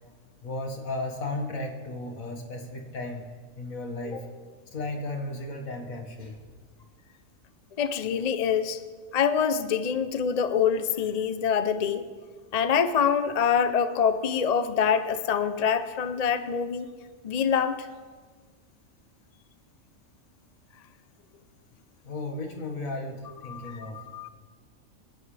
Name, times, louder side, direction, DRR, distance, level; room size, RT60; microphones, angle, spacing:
voice 1, 0.4-3.3 3.6-4.3 4.7-6.4 22.0-24.1, left 2 dB, 70° left, 2 dB, 2.2 m, -35 dB
voice 2, 7.8-8.8 9.1-12.0 12.5-16.9 17.2-17.9 23.4-24.3, left 7 dB, 45° left, 10 dB, 0.6 m, -25 dB
27.5 x 11.5 x 3.4 m, 1.5 s
omnidirectional pair, 1.5 m